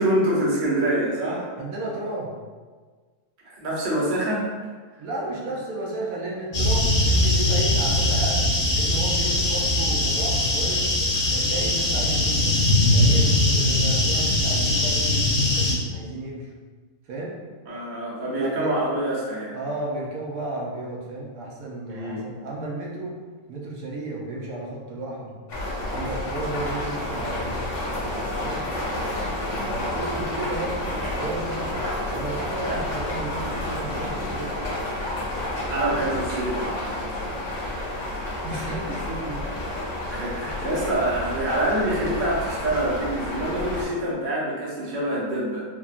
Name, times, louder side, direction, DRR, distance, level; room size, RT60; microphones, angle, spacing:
voice 1, 0.0-1.5 3.4-4.4 17.7-19.6 21.9-22.2 32.7-32.8 35.7-37.0 40.1-45.6, right 1 dB, 45° right, -6 dB, 0.7 m, -26 dB
voice 2, 1.6-2.3 5.0-10.9 11.3-12.6 12.9-16.5 17.1-17.3 18.4-18.7 19.5-23.1 23.5-25.4 25.9-27.7 28.0-28.6 29.7-31.7 32.1-34.5 38.4-39.5, right 2 dB, 80° right, -2 dB, 1.1 m, -33 dB
sound 1, 6.5-15.8, left 1 dB, 75° left, 0.3 m, -21 dB
sound 2, 25.5-43.8, left 1 dB, 60° left, 1.2 m, -30 dB
3.5 x 2.2 x 2.4 m, 1.4 s
omnidirectional pair, 1.6 m